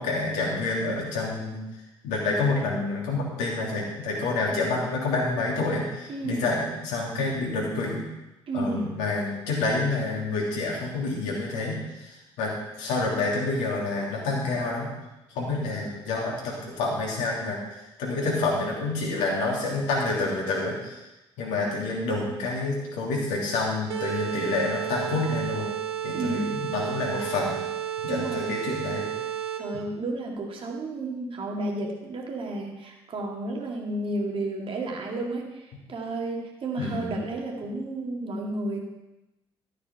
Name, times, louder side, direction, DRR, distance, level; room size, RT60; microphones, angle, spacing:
voice 1, 0.0-1.6 2.0-8.0 8.5-12.5 12.8-14.9 15.3-17.6 18.0-21.0 21.4-25.7 26.0-27.6 28.0-29.1 36.8-37.2, left 3 dB, 60° left, -3 dB, 3.2 m, -28 dB
voice 2, 6.1-6.4 8.5-8.9 26.1-26.5 28.1-28.5 29.6-35.6 35.9-38.8, right 2 dB, 40° right, 0 dB, 2.3 m, -31 dB
sound 1, 23.9-29.8, right 10 dB, 75° right, 0.8 m, -32 dB
13.5 x 6.8 x 5.7 m, 0.98 s
figure-of-eight pair, 45°, 14 cm